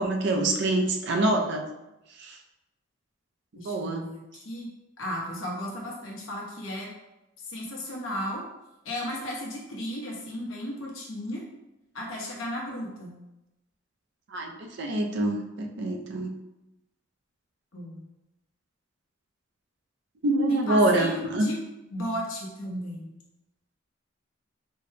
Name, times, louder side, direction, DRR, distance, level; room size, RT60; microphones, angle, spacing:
voice 1, 0.0-1.7 2.2-2.4 3.6-4.1 14.3-16.4 20.2-21.5, right 2 dB, 60° right, 3 dB, 0.5 m, -25 dB
voice 2, 3.5-4.7 5.0-6.9 7.5-8.4 8.8-11.4 11.9-13.2 17.7-18.0 20.5-21.6 21.9-23.1, left 1 dB, 75° left, -2 dB, 1.0 m, -35 dB
4.2 x 2.2 x 3.3 m, 0.94 s
head